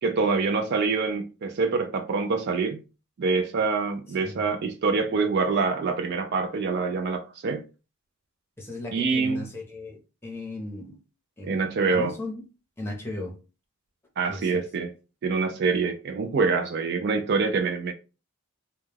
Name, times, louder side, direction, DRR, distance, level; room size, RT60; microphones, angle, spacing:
voice 1, 0.0-2.8 3.2-7.6 8.9-9.5 11.4-12.1 14.2-14.9 15.2-17.9, right 4 dB, 50° right, 0.3 m, -25 dB
voice 2, 8.6-11.0 11.4-11.6 11.9-12.4 12.8-13.3 14.3-14.5, left 2 dB, 10° left, 0.7 m, -36 dB
2.3 x 2.1 x 3.2 m
head